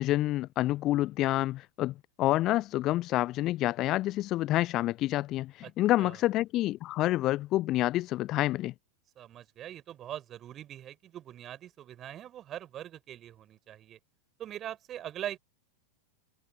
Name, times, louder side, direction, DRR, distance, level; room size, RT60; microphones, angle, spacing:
voice 1, 0.0-8.7, left 16 dB, 35° left, 0.4 m, -28 dB
voice 2, 9.2-14.0 14.4-15.4, right 11 dB, 30° right, 3.9 m, -42 dB
figure-of-eight pair, 90°, 0 cm